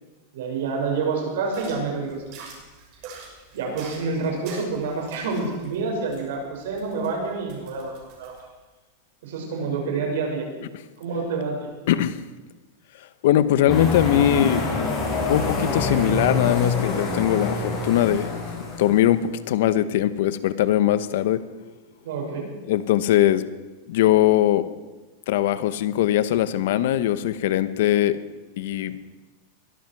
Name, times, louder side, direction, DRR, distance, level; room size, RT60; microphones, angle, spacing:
voice 1, 0.3-2.2 3.5-8.3 9.2-10.5 11.0-11.7 22.0-22.5, right 4 dB, 75° right, 1 dB, 6.1 m, -28 dB
sound 1, 1.5-8.4, right 4 dB, 50° right, 6.6 m, -44 dB
voice 2, 11.9-12.2 13.2-14.6 15.2-18.3 18.8-19.2 19.5-21.4 22.7-23.4 23.9-24.6 25.3-28.2 28.6-28.9, left 12 dB, 70° left, 13 dB, 1.0 m, -21 dB
sound 2, 13.7-19.2, left 3 dB, 25° left, 7.5 m, -26 dB
22.0 x 13.5 x 4.8 m, 1.2 s
supercardioid pair, 145°, 0 cm